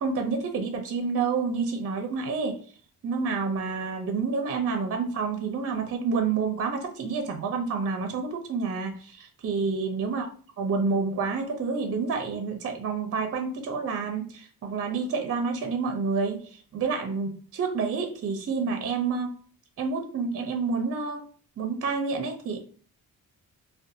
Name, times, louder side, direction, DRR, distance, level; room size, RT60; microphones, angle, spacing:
voice 1, 0.0-2.6 3.0-10.3 10.6-19.3 19.8-21.3 21.6-22.6, right 4 dB, 45° right, 4 dB, 0.5 m, -29 dB
2.4 x 2.2 x 2.7 m, 0.42 s
cardioid pair, 85°, 35 cm